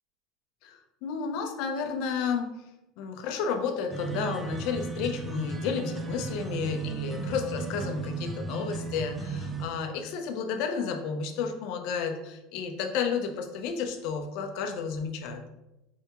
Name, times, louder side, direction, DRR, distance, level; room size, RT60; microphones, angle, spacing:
voice 1, 0.6-2.5 3.0-15.4, left 5 dB, 60° left, 6 dB, 0.7 m, -32 dB
sound 1, 3.9-9.6, right 4 dB, 15° right, 0.5 m, -35 dB
4.6 x 3.4 x 3.0 m, 0.90 s
supercardioid pair, 140°, 0 cm